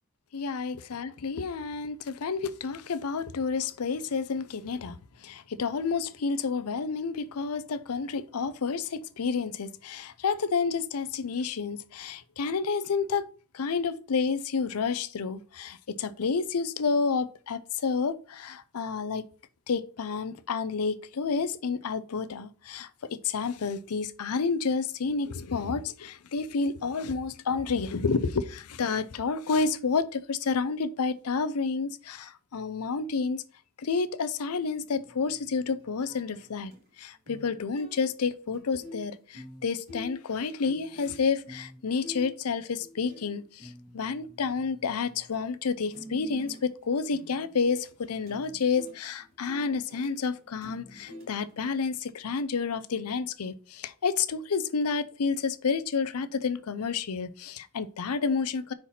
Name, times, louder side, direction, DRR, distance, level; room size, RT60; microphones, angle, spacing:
voice 1, 0.3-13.3 13.5-19.2 19.7-33.4 33.8-36.7 37.0-58.7, left 5 dB, 90° left, 0.6 m, -30 dB
sound 1, 34.8-36.9 37.3-37.5 37.8-45.4 45.6-51.7, equal, 45° right, 2.6 m, -48 dB
5.7 x 4.4 x 4.2 m
head